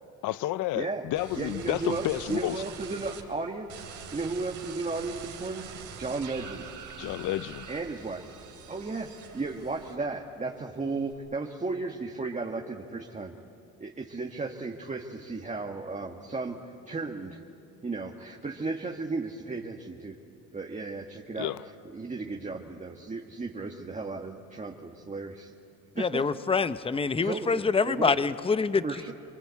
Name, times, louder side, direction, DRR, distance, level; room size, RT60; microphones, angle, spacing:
voice 1, 0.2-2.6 7.0-7.7 21.4-21.6, left 15 dB, 85° left, 0.5 m, -31 dB
voice 2, 0.7-1.0 1.4-5.6 6.0-6.6 7.7-8.2 8.7-13.3 13.8-16.6 16.9-17.4 17.8-20.2 20.5-21.5 21.9-25.5 26.0-26.3 27.2-28.2 28.8-29.1, right 3 dB, 25° right, 1.6 m, -34 dB
sound 1, 1.2-3.2 3.7-10.2 10.6-11.1, right 6 dB, 75° right, 3.0 m, -44 dB
voice 3, 26.0-28.8, left 4 dB, 20° left, 0.7 m, -26 dB
26.0 x 23.0 x 8.4 m
cardioid pair, 90°, 30 cm